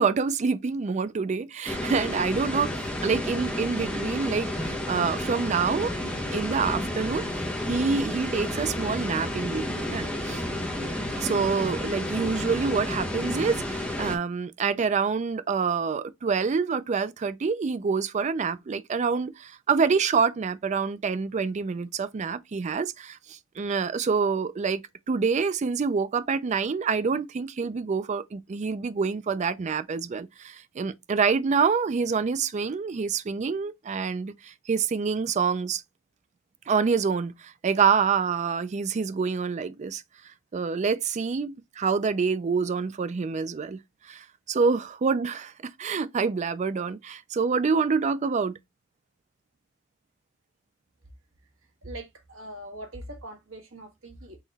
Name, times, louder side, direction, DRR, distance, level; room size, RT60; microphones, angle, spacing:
voice 1, 0.0-2.7 3.0-5.9 6.3-10.4 11.2-24.8 25.1-35.8 36.7-40.0 40.5-43.8 44.1-45.5 45.8-48.5, right 5 dB, 35° right, 0.3 m, -27 dB
sound 1, 1.7-14.2, left 1 dB, 5° left, 0.8 m, -31 dB
voice 2, 51.8-54.4, right 1 dB, 75° right, 1.5 m, -41 dB
3.9 x 3.0 x 4.0 m
head